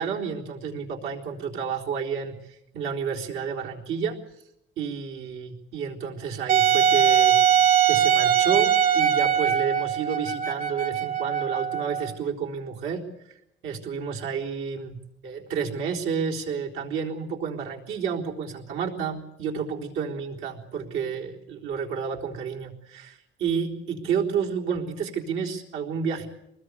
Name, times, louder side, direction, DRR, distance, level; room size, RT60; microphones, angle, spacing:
voice 1, 0.0-2.3 2.7-4.2 4.8-7.3 7.9-13.1 13.6-15.0 15.2-26.3, right 6 dB, 70° right, -1 dB, 4.1 m, -30 dB
Wind instrument woodwind instrument, 6.5-12.1, right 9 dB, 40° right, 0.9 m, -21 dB
25.0 x 20.5 x 8.3 m, 0.84 s
cardioid pair, 170°, 21 cm